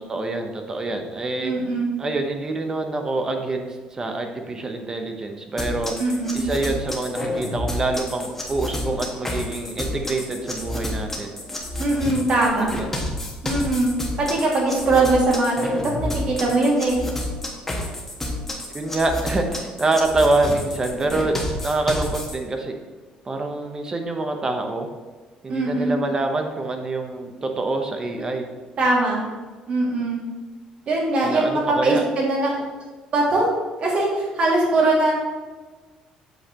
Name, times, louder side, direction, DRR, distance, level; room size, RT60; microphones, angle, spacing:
voice 1, 0.1-1.5 2.0-5.9 6.3-11.4 12.7-12.9 18.7-21.3 21.6-22.7 23.2-24.9 25.4-28.5 31.2-32.0, right 2 dB, 25° right, 4 dB, 1.0 m, -26 dB
voice 2, 1.4-1.9 6.0-6.4 11.8-12.7 13.4-13.9 14.2-15.5 16.0-16.9 25.5-26.0 28.2-28.3 28.8-29.2 29.7-30.2 30.9-32.6 33.1-33.5 33.8-35.1, right 2 dB, 50° right, -3 dB, 2.3 m, -21 dB
sound 1, 5.6-22.4, left 1 dB, 10° left, 1.4 m, -30 dB
8.1 x 6.5 x 3.0 m, 1.3 s
cardioid pair, 120°, 3 cm